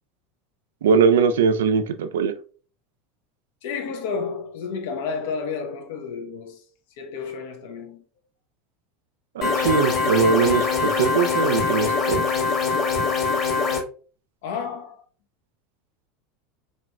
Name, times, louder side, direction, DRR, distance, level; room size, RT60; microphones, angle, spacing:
voice 1, 0.8-2.3 9.4-12.2, right 6 dB, 70° right, 0.3 m, -21 dB
voice 2, 3.6-6.6 7.0-8.0 14.4-15.0, left 5 dB, 65° left, 0.8 m, -31 dB
sound 1, 9.4-13.8, left 5 dB, 35° left, 1.3 m, -23 dB
4.2 x 3.0 x 2.3 m
figure-of-eight pair, 80°, 0 cm